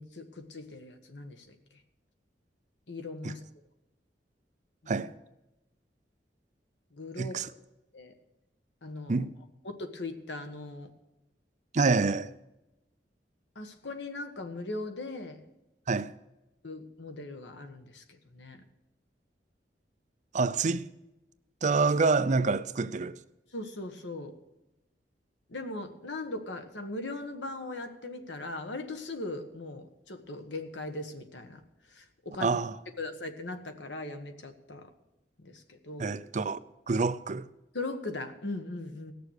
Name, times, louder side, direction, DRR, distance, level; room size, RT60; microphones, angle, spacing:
voice 1, 0.0-1.6 2.9-3.4 4.8-5.0 6.9-7.5 7.9-8.1 8.8-9.2 9.6-10.9 13.5-15.4 16.6-18.6 23.5-24.3 25.5-31.6 31.9-32.5 33.0-34.9 35.4-36.1 37.7-39.1, left 2 dB, 90° left, 1.5 m, -39 dB
voice 2, 7.2-7.5 9.1-9.3 11.7-12.3 15.9-16.1 20.3-20.9 21.6-23.2 32.4-32.7 36.0-36.6 36.9-37.5, right 4 dB, 45° right, 0.5 m, -27 dB
18.0 x 6.8 x 6.6 m
head